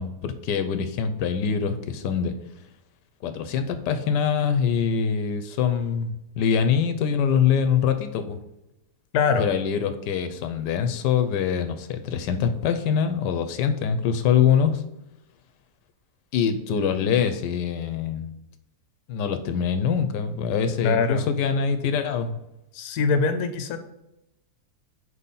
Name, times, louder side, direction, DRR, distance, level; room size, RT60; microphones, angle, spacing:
voice 1, 0.0-2.3 3.2-8.4 9.4-14.8 16.3-18.3 19.1-22.4, left 7 dB, 90° left, 8 dB, 1.2 m, -24 dB
voice 2, 9.1-9.5 20.8-21.3 22.7-23.8, left 5 dB, 75° left, 8 dB, 1.1 m, -22 dB
5.0 x 4.2 x 5.4 m, 0.88 s
omnidirectional pair, 1.8 m